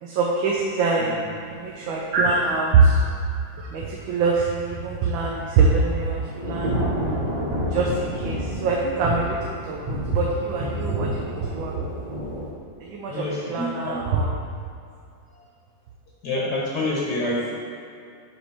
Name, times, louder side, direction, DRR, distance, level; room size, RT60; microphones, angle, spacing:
voice 1, 0.0-3.0 3.6-6.9 7.7-11.9 12.8-14.3, right 4 dB, 85° right, -3 dB, 1.5 m, -23 dB
Thunder / Rain, 5.1-12.5, equal, 40° right, 0.6 m, -30 dB
voice 2, 13.1-14.0 15.3-15.4 16.2-17.5, left 1 dB, 65° left, -5 dB, 1.5 m, -27 dB
7.1 x 3.7 x 4.8 m, 2.4 s
omnidirectional pair, 2.1 m